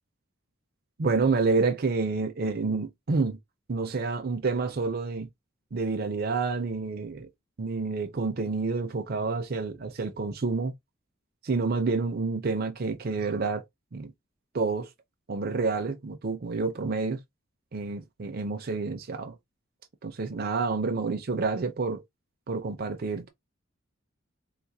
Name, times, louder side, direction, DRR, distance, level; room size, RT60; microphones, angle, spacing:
voice 1, 1.0-3.4 3.7-5.3 5.7-7.3 7.6-10.7 11.4-13.6 13.9-14.1 14.5-14.9 15.3-17.2 17.7-19.4 20.0-22.0 22.5-23.3, right 4 dB, 50° right, 0.5 m, -28 dB
3.8 x 2.4 x 2.7 m
head